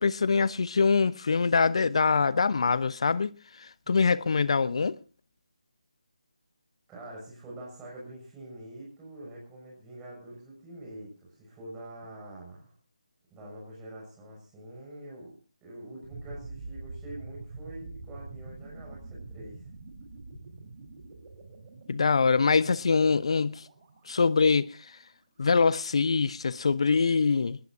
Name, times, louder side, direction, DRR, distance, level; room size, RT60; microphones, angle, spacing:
voice 1, 0.0-3.3 3.9-5.0 21.9-23.6 24.1-24.7 25.4-27.6, left 5 dB, 50° left, 0.9 m, -24 dB
voice 2, 6.9-12.7 13.3-15.4 15.6-19.6, right 1 dB, 10° right, 6.7 m, -45 dB
sound 1, 16.0-24.9, right 3 dB, 25° right, 4.4 m, -46 dB
20.5 x 19.5 x 2.7 m
figure-of-eight pair, 155°, 4 cm